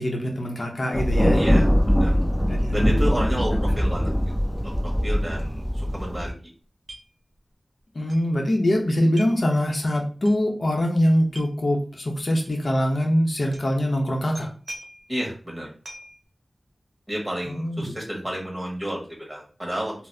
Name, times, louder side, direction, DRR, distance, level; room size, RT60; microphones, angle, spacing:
voice 1, 0.0-1.4 2.5-3.0 3.3-3.6 7.9-14.5 17.4-17.9, equal, 70° left, 1 dB, 0.7 m, -23 dB
Thunder, 0.9-6.3, equal, 5° left, 0.9 m, -22 dB
voice 2, 1.3-2.1 2.7-4.1 4.6-6.3 15.1-15.7 17.1-19.9, equal, 15° right, -1 dB, 1.5 m, -31 dB
sound 1, 6.9-7.0 7.3-7.4 8.1-8.2 9.2-9.4 10.2-10.4 11.3-11.5 12.4-12.5 13.5-13.7 14.3-15.1 15.8-16.2, equal, 55° right, 0.6 m, -41 dB
3.9 x 2.0 x 2.7 m, 0.38 s
wide cardioid pair, 50°, 0 cm